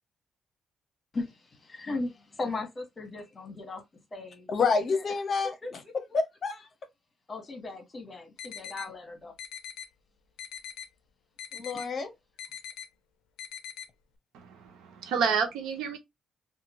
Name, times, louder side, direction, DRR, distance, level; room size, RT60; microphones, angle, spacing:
voice 1, 1.1-3.8 4.1-4.5 5.6-5.7 7.3-9.3, left 3 dB, 30° left, 1.3 m, -37 dB
voice 2, 4.5-6.7 11.5-12.1, left 4 dB, 50° left, 0.7 m, -29 dB
sound 1, 8.4-8.9 9.4-9.9 10.4-10.9 11.4-11.9 12.4-12.9 13.4-13.9, left 9 dB, 90° left, 0.4 m, -41 dB
voice 3, 14.3-16.0, right 6 dB, 85° right, 0.8 m, -29 dB
2.8 x 2.5 x 2.8 m
cardioid pair, 90°, 0 cm